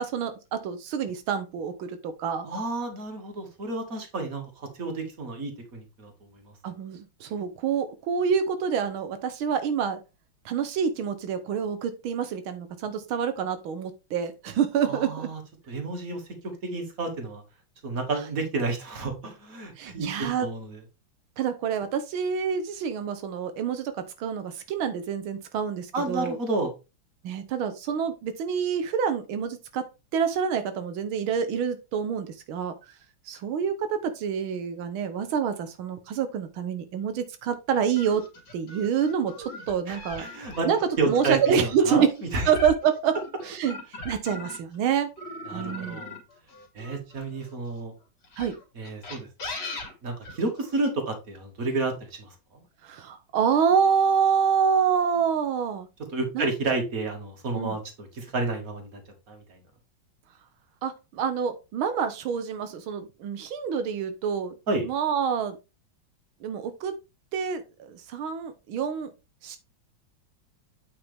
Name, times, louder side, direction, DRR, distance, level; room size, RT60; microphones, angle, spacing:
voice 1, 0.0-2.5 6.6-10.0 10.4-15.3 19.8-20.5 21.4-26.4 27.2-29.9 30.1-32.7 33.3-38.2 38.5-40.3 40.7-40.8 41.1-42.1 42.5-43.2 43.4-43.8 44.0-45.1 45.5-46.0 48.4-48.5 52.8-55.9 56.3-56.5 57.5-57.8 60.8-64.5 64.8-65.6 66.4-66.9 67.3-69.1 69.4-69.6, right 7 dB, 90° right, 9 dB, 1.7 m, -27 dB
voice 2, 2.4-6.1 14.9-15.4 15.7-16.2 16.6-17.4 17.8-20.8 25.9-26.7 39.9-40.7 41.0-42.1 42.3-42.5 45.5-46.1 46.8-47.9 48.8-49.3 50.0-52.3 56.1-59.0 59.3-59.4 64.7-64.9, right 3 dB, 45° right, 3 dB, 2.5 m, -30 dB
sound 1, 38.0-44.8 45.2-47.5 48.2-50.9, left 2 dB, 60° left, 3.2 m, -39 dB
8.7 x 5.7 x 3.5 m, 0.27 s
omnidirectional pair, 2.2 m